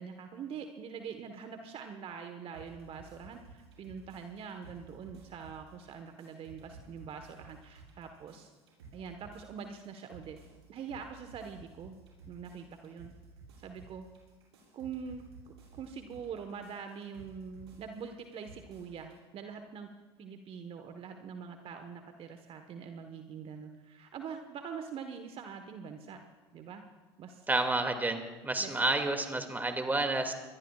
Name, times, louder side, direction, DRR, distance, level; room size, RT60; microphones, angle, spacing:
voice 1, 0.0-8.5 8.9-10.4 10.7-12.0 12.3-13.1 13.6-14.1 14.7-19.9 20.2-26.2 26.5-26.8 27.2-27.5 28.6-28.8, right 6 dB, 45° right, 6 dB, 1.3 m, -44 dB
sound 1, 2.5-19.2, right 3 dB, 80° right, 6.9 m, -55 dB
voice 2, 27.5-30.3, right 2 dB, 15° right, 6 dB, 2.3 m, -30 dB
24.0 x 21.0 x 2.4 m, 1.3 s
hypercardioid pair, 75°, 14 cm